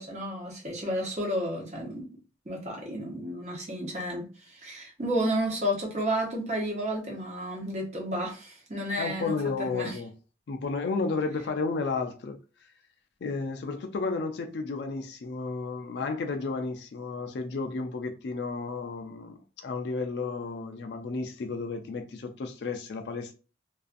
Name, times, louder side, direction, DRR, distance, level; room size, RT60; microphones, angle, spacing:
voice 1, 0.0-2.1 2.5-10.0, equal, 40° right, 0.8 m, -32 dB
voice 2, 9.0-10.1 10.5-12.7 13.2-23.3, left 4 dB, 65° left, 0.4 m, -32 dB
2.4 x 2.4 x 2.4 m
head